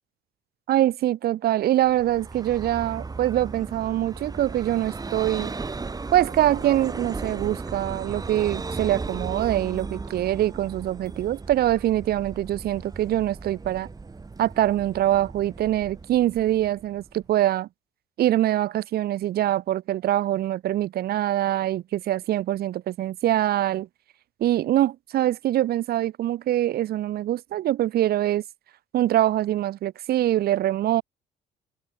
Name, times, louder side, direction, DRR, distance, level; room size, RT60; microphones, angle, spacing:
voice 1, 0.7-5.5 6.1-13.9 14.4-17.7 18.2-23.9 24.4-28.4 28.9-31.0, right 13 dB, 65° right, 2.8 m, -24 dB
Vehicle, 1.8-17.3, right 4 dB, 20° right, 7.6 m, -36 dB
cardioid pair, 110°, 17 cm